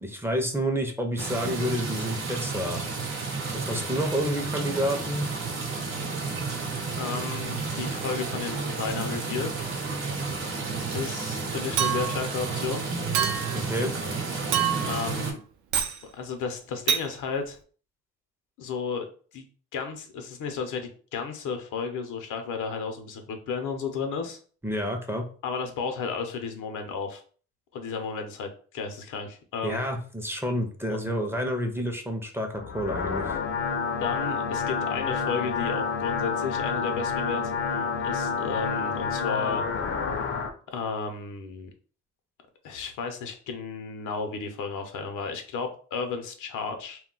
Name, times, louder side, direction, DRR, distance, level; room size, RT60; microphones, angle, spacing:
voice 1, 0.0-2.8 3.5-5.3 13.5-13.9 24.6-25.3 29.6-33.3, equal, 10° right, 3 dB, 0.5 m, -29 dB
sound 1, 1.2-15.3, right 4 dB, 45° right, 0.8 m, -31 dB
voice 2, 7.0-9.5 10.9-12.8 14.8-15.4 16.1-17.6 18.6-19.0 19.3-19.5 19.7-24.4 25.4-27.2 27.7-29.8 34.0-39.7 40.7-41.7 42.6-47.0, left 5 dB, 80° left, 5 dB, 0.7 m, -33 dB
Chink clink, 11.8-12.3 13.1-13.6 14.5-15.0 15.7-16.0 16.9-17.1, right 9 dB, 70° right, 0.5 m, -26 dB
sound 2, 32.5-40.5, left 5 dB, 45° left, 0.5 m, -29 dB
2.2 x 2.2 x 3.7 m, 0.42 s
cardioid pair, 90°, 30 cm